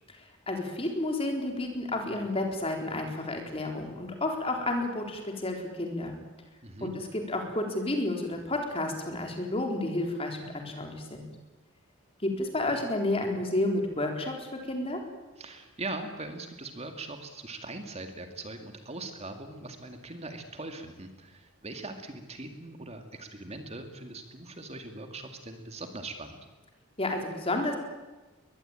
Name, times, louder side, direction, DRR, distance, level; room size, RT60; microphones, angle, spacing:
voice 1, 0.2-6.2 6.8-11.3 12.2-15.0 27.0-27.8, left 2 dB, 25° left, 3 dB, 4.0 m, -31 dB
voice 2, 6.6-6.9 15.4-26.4, right 2 dB, 30° right, 6 dB, 2.2 m, -41 dB
22.5 x 20.5 x 9.0 m, 1.2 s
head